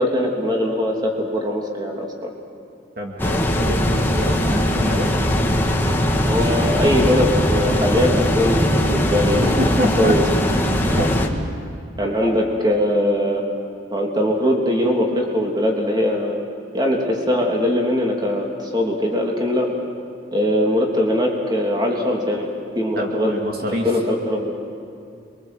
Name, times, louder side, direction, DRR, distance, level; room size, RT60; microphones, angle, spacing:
voice 1, 0.0-2.3 6.2-9.6 10.0-10.2 10.9-11.0 12.0-13.4 13.9-16.4 16.7-19.7 20.3-22.5 22.7-23.3 23.7-24.5, left 1 dB, 25° right, 0 dB, 3.2 m, -21 dB
voice 2, 3.0-5.1 9.0-9.1 9.4-10.1 10.7-11.1 12.2-12.3 23.0-23.9, equal, 55° right, 0 dB, 2.6 m, -26 dB
sound 1, 3.2-11.3, equal, 10° left, 1.8 m, -20 dB
27.5 x 23.0 x 7.9 m, 2.5 s
head